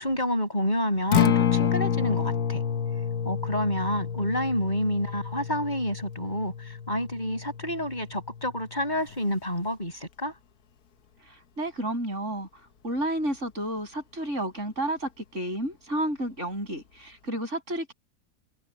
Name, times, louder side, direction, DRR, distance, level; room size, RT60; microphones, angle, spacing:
voice 1, 0.0-2.6 3.2-10.4, equal, 30° left, 7.8 m, -29 dB
Acoustic guitar, 1.0-9.2, left 9 dB, 85° left, 1.6 m, -29 dB
voice 2, 11.6-12.5 12.8-17.9, right 1 dB, 50° right, 7.9 m, -31 dB
omnidirectional pair, 1.6 m